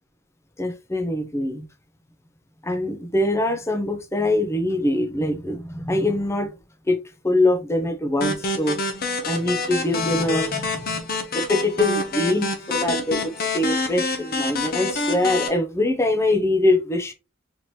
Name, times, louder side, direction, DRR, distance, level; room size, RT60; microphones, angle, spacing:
voice 1, 0.6-1.7 2.6-6.5 6.9-7.0 7.2-8.8 9.2-17.1, left 1 dB, 15° left, 0.5 m, -23 dB
sound 1, 8.2-15.5, left 3 dB, 50° left, 0.8 m, -27 dB
4.3 x 2.9 x 3.1 m
head